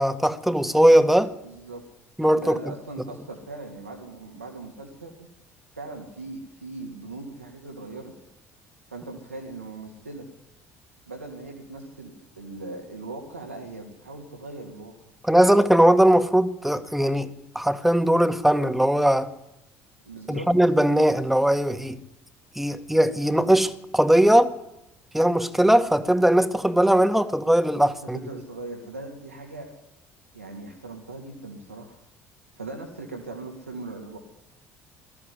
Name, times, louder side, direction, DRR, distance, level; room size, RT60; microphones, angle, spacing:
voice 1, 0.0-1.3 2.2-2.6 15.3-19.3 20.3-22.0 22.6-24.5 25.1-28.2, right 1 dB, 5° right, 1.9 m, -20 dB
voice 2, 1.4-1.8 2.3-5.3 5.7-8.1 8.9-10.3 11.1-14.9 20.0-20.5 28.1-29.7 30.3-32.0 32.5-34.2, right 2 dB, 85° right, 2.6 m, -39 dB
21.5 x 14.0 x 9.7 m
figure-of-eight pair, 55°, 7 cm